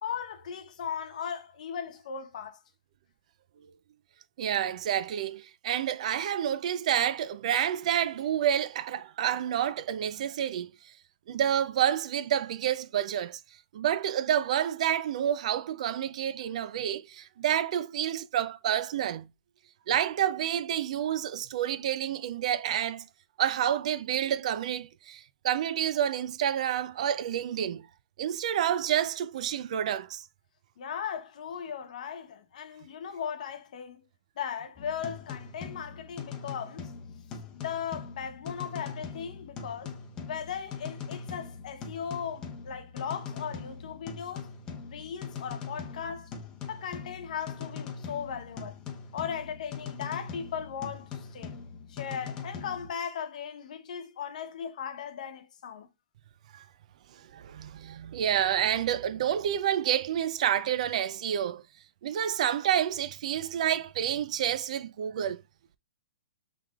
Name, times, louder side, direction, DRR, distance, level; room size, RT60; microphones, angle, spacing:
voice 1, 0.0-2.6 30.8-34.0 34.4-36.8 37.5-39.9 40.3-44.5 44.9-46.3 46.7-48.8 49.1-51.6 51.9-55.9, left 7 dB, 60° left, 0.9 m, -37 dB
voice 2, 4.4-10.7 11.3-13.4 13.7-19.3 19.9-23.0 23.4-27.9 28.2-30.2 56.5-56.6 57.3-61.6 62.0-65.4, right 10 dB, 55° right, 0.4 m, -29 dB
sound 1, 34.8-52.9, left 6 dB, 20° left, 0.8 m, -41 dB
5.5 x 3.4 x 2.3 m
hypercardioid pair, 155°, 5 cm